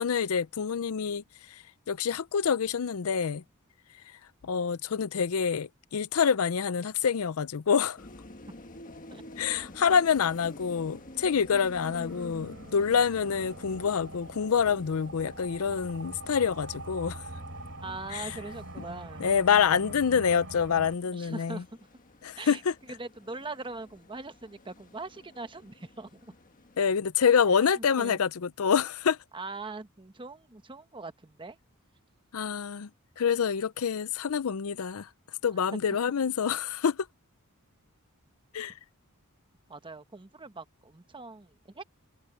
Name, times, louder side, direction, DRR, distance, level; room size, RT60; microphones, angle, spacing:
voice 1, 0.0-3.4 4.4-8.0 9.4-17.2 18.1-18.4 19.2-21.6 22.2-22.7 26.8-29.2 32.3-32.9 33.2-35.1 35.4-37.1 38.5-38.8, left 6 dB, 70° left, 0.5 m, -27 dB
sound 1, 8.0-27.0, left 2 dB, 40° left, 1.6 m, -50 dB
sound 2, 10.4-20.9, right 2 dB, 65° right, 3.2 m, -45 dB
voice 2, 17.8-19.3 21.1-21.7 22.4-22.6 22.9-26.3 27.5-28.2 29.3-31.6 35.7-36.0 39.7-41.8, right 3 dB, 25° right, 1.1 m, -41 dB
head